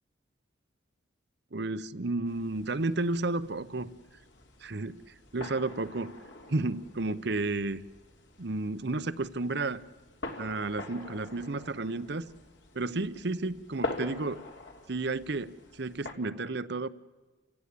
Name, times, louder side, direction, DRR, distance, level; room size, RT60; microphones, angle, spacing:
voice 1, 1.5-3.9 4.6-5.0 5.3-6.1 6.5-7.8 8.4-9.8 10.4-12.3 12.7-14.4 14.9-16.9, right 2 dB, 55° right, 15 dB, 0.8 m, -32 dB
sound 1, 2.3-16.1, left 2 dB, 65° left, 3.2 m, -44 dB
30.0 x 16.5 x 8.4 m, 1.2 s
head